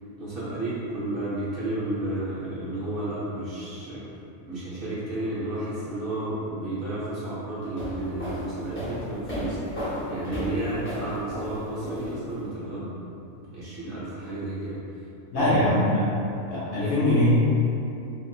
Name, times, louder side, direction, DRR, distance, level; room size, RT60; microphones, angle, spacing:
voice 1, 0.2-4.0 4.5-12.9 13.3-14.8 15.3-15.6 16.7-17.0, right 1 dB, 55° right, -10 dB, 0.7 m, -32 dB
sound 1, 7.6-12.5, equal, 20° left, 0.3 m, -34 dB
voice 2, 15.3-16.0 16.5-17.3, left 1 dB, 60° left, -9 dB, 0.7 m, -22 dB
2.6 x 2.5 x 2.6 m, 2.8 s
omnidirectional pair, 1.4 m